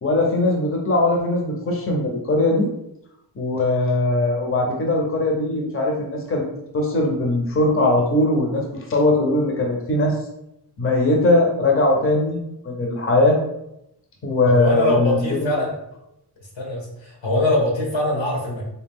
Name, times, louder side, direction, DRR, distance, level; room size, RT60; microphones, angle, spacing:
voice 1, 0.0-2.7 3.4-6.5 6.7-10.2 10.8-13.4 14.2-15.6, left 2 dB, 30° left, 0 dB, 0.7 m, -20 dB
voice 2, 14.5-15.7 16.5-18.7, left 1 dB, 85° left, -3 dB, 1.4 m, -22 dB
4.0 x 2.3 x 3.6 m, 0.82 s
wide cardioid pair, 115°, 43 cm